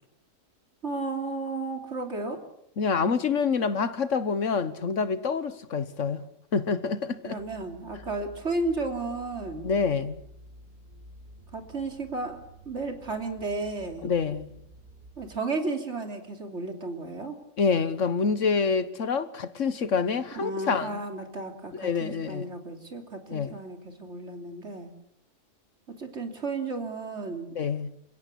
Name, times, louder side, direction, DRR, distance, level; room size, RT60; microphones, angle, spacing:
voice 1, 0.8-2.4 7.2-9.7 11.5-12.4 12.7-14.1 15.2-17.4 20.4-24.9 26.0-27.5, right 3 dB, 60° right, 3.4 m, -33 dB
voice 2, 2.8-6.2 6.5-7.4 9.6-10.2 14.0-14.5 17.6-21.0 21.7-22.5 23.3-23.5 27.5-27.9, left 5 dB, 70° left, 1.6 m, -27 dB
sound 1, 7.4-15.4, equal, 35° right, 3.5 m, -50 dB
28.0 x 16.5 x 8.5 m
omnidirectional pair, 1.3 m